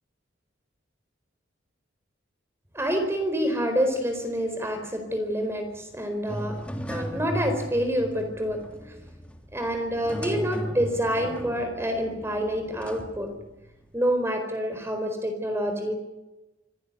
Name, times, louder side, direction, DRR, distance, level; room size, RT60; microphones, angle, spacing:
voice 1, 2.7-6.6 6.9-8.9 9.5-13.3 13.9-15.9, equal, 15° right, 5 dB, 4.4 m, -27 dB
sound 1, 6.3-13.9, equal, 5° left, 3.2 m, -37 dB
26.5 x 18.5 x 9.8 m, 1.0 s
head